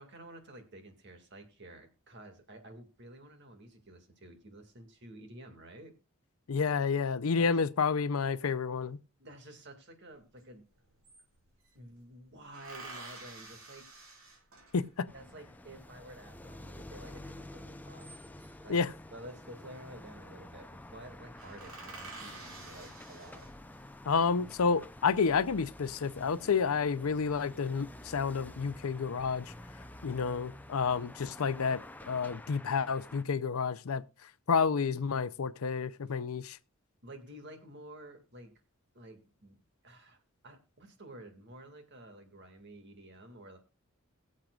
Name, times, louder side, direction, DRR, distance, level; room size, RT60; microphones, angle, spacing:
voice 1, 0.0-5.9 7.4-7.6 9.2-10.7 11.7-13.9 15.1-18.8 19.1-23.5 37.0-38.5 38.9-39.6 39.8-43.6, right 1 dB, 55° right, 2.1 m, -51 dB
voice 2, 6.5-9.0 14.7-15.1 18.7-18.9 24.1-29.5 30.0-34.0 34.5-36.6, left 5 dB, 80° left, 0.6 m, -30 dB
sound 1, 10.4-10.5 10.7-11.8 12.5-15.0 17.7-18.7 19.9-20.2 20.5-20.7 21.0-21.1 21.4-23.9 24.5-25.2, right 3 dB, 75° right, 3.5 m, -49 dB
sound 2, 15.1-33.2, left 1 dB, 10° left, 0.5 m, -50 dB
21.5 x 7.5 x 2.4 m
head